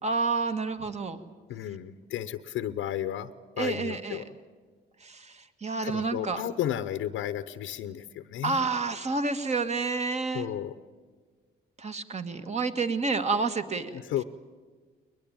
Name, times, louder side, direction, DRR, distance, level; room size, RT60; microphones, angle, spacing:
voice 1, 0.0-1.2 3.6-4.2 5.0-6.4 8.4-10.5 11.8-13.9, right 4 dB, 35° right, 9 dB, 1.8 m, -29 dB
voice 2, 1.5-3.3 3.6-4.3 5.8-8.7 10.3-10.7 13.9-14.2, left 11 dB, 85° left, 11 dB, 0.9 m, -33 dB
21.5 x 21.0 x 9.0 m, 1.5 s
cardioid pair, 90°, 20 cm